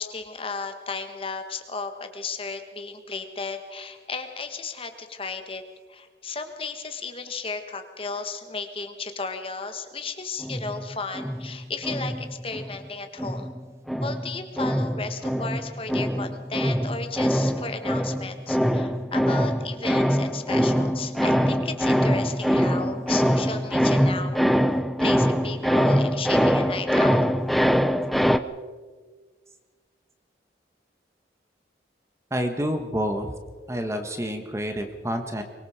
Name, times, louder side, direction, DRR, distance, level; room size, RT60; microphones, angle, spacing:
voice 1, 0.0-5.6 5.9-13.5 14.0-24.4 25.0-27.2, left 4 dB, 30° left, 7 dB, 1.4 m, -34 dB
sound 1, 10.4-12.8 13.2-28.4, equal, ahead, 0.5 m, -23 dB
voice 2, 32.3-33.3 33.7-35.4, equal, 15° right, 6 dB, 1.5 m, -28 dB
24.0 x 22.0 x 5.0 m, 1.5 s
head